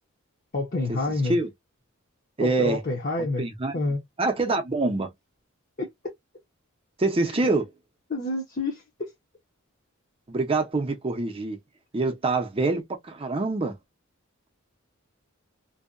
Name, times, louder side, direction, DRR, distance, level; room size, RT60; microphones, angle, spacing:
voice 1, 0.5-1.4 2.4-3.4 3.7-4.0 5.8-5.9 7.3-7.5 8.1-9.1, left 2 dB, 40° left, 0.7 m, -28 dB
voice 2, 2.4-2.8 3.4-3.7 4.2-5.1 7.0-7.7 10.3-11.6 11.9-13.7, right 3 dB, 25° right, 0.5 m, -25 dB
2.6 x 2.1 x 2.4 m
head